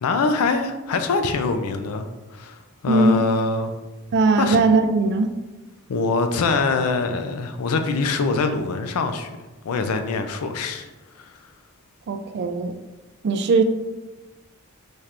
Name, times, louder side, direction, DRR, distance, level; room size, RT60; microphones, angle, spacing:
voice 1, 0.0-3.8 4.4-4.6 5.9-9.3 9.6-10.9 11.2-11.4, left 4 dB, 80° left, 7 dB, 0.4 m, -24 dB
voice 2, 2.9-3.2 4.1-5.3 12.1-12.7 13.2-13.6, right 3 dB, 50° right, 7 dB, 0.3 m, -19 dB
4.3 x 3.3 x 2.5 m, 1.1 s
head